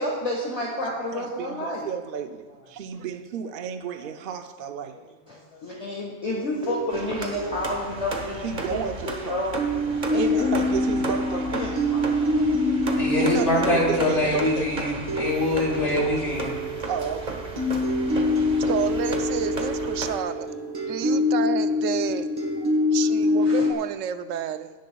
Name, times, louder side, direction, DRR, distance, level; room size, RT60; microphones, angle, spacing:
voice 1, 0.0-1.9 5.3-8.8 9.0-9.6 10.1-10.5 11.3-12.0 12.3-12.4 23.4-23.7, left 1 dB, 30° left, -3 dB, 1.5 m, -30 dB
voice 2, 1.1-5.0 8.4-9.4 10.0-11.8 13.2-14.7 16.9-17.5 18.3-18.5, right 7 dB, 60° right, 7 dB, 0.6 m, -32 dB
sound 1, 6.3-9.1 9.6-23.7, left 2 dB, 20° right, 1.3 m, -26 dB
sound 2, 6.9-20.2, right 2 dB, 40° right, 1.3 m, -35 dB
voice 3, 13.0-16.6 20.8-21.2 22.5-22.7, left 1 dB, 65° left, -4 dB, 3.3 m, -25 dB
voice 4, 18.0-20.5 20.9-22.3 22.9-24.7, right 9 dB, 85° right, 11 dB, 1.0 m, -30 dB
17.0 x 10.5 x 2.3 m, 1.4 s
omnidirectional pair, 1.3 m